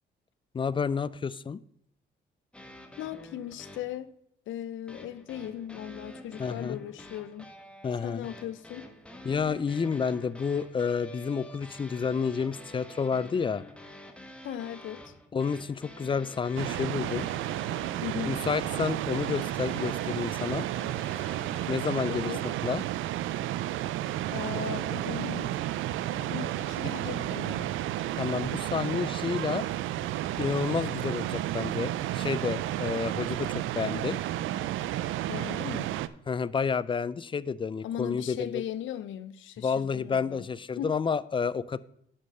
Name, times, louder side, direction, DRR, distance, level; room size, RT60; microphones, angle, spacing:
voice 1, 0.5-1.6 6.4-6.8 7.8-8.3 9.2-13.6 15.3-17.3 18.3-20.7 21.7-22.3 22.6-22.8 28.2-29.7 30.4-34.2 36.3-38.6 39.6-41.8, left 6 dB, 25° left, 0.4 m, -30 dB
sound 1, 2.5-4.0 4.9-22.1, equal, 5° left, 1.3 m, -48 dB
voice 2, 3.0-4.1 4.5-7.5 8.0-8.9 14.4-15.1 18.0-18.4 22.1-22.4 24.3-25.5 26.1-27.7 35.3-35.9 37.8-40.4 40.8-40.9, left 11 dB, 75° left, 0.7 m, -38 dB
sound 2, 16.6-36.1, right 13 dB, 80° right, 0.4 m, -32 dB
9.9 x 5.3 x 5.5 m
cardioid pair, 90°, 20 cm